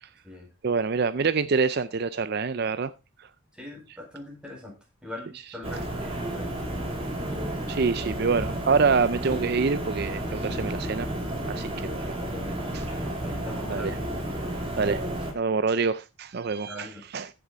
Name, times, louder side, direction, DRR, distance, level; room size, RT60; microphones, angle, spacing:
voice 1, 0.6-2.9 3.2-3.3 7.7-11.1 11.5-12.2 12.7-12.8 13.7-14.0 14.8-15.0 15.3-17.3, right 5 dB, 45° right, 0.5 m, -26 dB
voice 2, 3.5-6.1 6.3-6.5 12.2-12.7 13.2-14.0 16.7-17.0, left 1 dB, 5° right, 4.6 m, -41 dB
sound 1, 5.6-15.3, right 1 dB, 25° right, 3.0 m, -32 dB
15.0 x 7.0 x 3.9 m
head